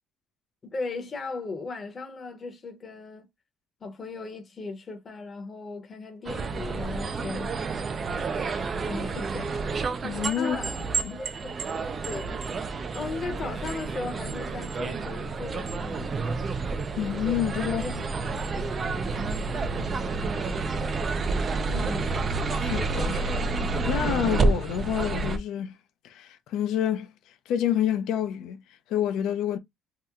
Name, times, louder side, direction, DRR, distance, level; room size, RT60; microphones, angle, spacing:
voice 1, 0.6-3.3 3.8-7.6 8.8-9.6 10.4-10.8 11.1-11.5 12.0-12.5 12.9-16.1 17.7-18.1 21.7-22.1, left 3 dB, 25° left, 0.8 m, -37 dB
sound 1, 6.3-25.4, right 3 dB, 30° right, 0.3 m, -29 dB
voice 2, 10.0-10.6 11.0-11.2 17.0-17.8 22.5-23.5 23.8-25.8 26.0-27.1 27.5-28.6 28.9-29.6, left 10 dB, 70° left, 0.5 m, -28 dB
2.8 x 2.1 x 3.6 m
cardioid pair, 165°, 0 cm